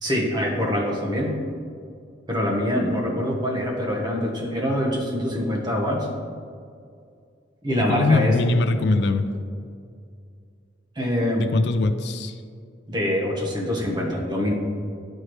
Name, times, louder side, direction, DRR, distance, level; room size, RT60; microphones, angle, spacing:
voice 1, 0.0-1.3 2.3-6.1 7.6-8.4 10.9-11.5 12.9-14.5, equal, 25° right, -2 dB, 1.2 m, -24 dB
voice 2, 7.9-9.3 11.4-12.4, left 3 dB, 65° left, 10 dB, 0.4 m, -22 dB
10.5 x 4.4 x 3.2 m, 2.3 s
head